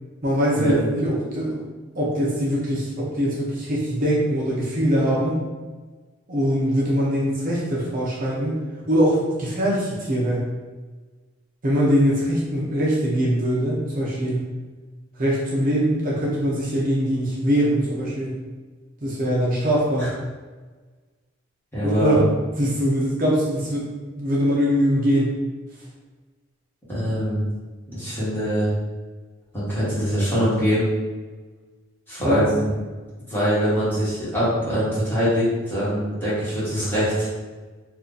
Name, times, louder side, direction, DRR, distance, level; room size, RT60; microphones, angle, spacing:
voice 1, 0.2-1.6 1.9-5.4 6.3-8.6 8.9-10.4 11.6-14.5 15.2-18.4 19.0-20.1 21.8-22.2 22.6-23.9 24.1-25.3 32.2-32.4, equal, 45° right, -5 dB, 0.6 m, -22 dB
voice 2, 21.7-22.2 26.9-27.5 27.9-28.7 29.5-30.9 32.1-32.6 33.3-37.3, equal, 10° left, -11 dB, 1.3 m, -23 dB
2.7 x 2.4 x 3.8 m, 1.3 s
head